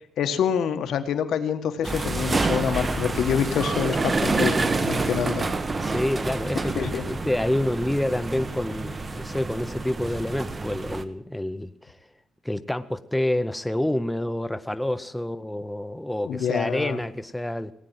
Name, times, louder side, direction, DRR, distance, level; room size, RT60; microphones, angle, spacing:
voice 1, 0.2-4.5 4.8-5.5 6.7-7.1 16.2-17.0, left 8 dB, 75° left, 8 dB, 1.5 m, -26 dB
sound 1, 1.8-11.0, right 3 dB, 25° right, 1.0 m, -28 dB
voice 2, 5.8-12.0 12.4-17.7, left 1 dB, 5° left, 11 dB, 0.5 m, -28 dB
18.0 x 9.2 x 7.6 m, 0.73 s
cardioid pair, 130°, 0 cm